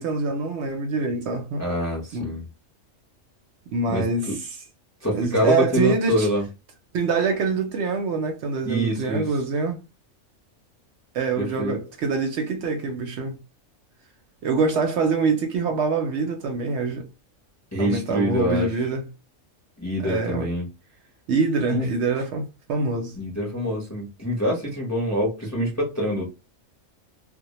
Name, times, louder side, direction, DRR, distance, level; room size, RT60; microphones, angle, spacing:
voice 1, 0.0-1.6 2.1-2.4 3.7-4.4 5.1-6.3 6.9-9.8 11.1-13.4 14.4-17.1 17.8-19.1 20.0-20.5 21.3-23.1, right 4 dB, 65° right, 0.8 m, -25 dB
voice 2, 1.6-2.4 3.9-4.4 5.0-6.4 8.6-9.3 11.4-11.7 17.7-18.7 19.8-20.7 21.7-21.9 22.1-22.2 23.2-26.3, equal, 20° left, 0.5 m, -25 dB
2.2 x 2.0 x 2.9 m
omnidirectional pair, 1.3 m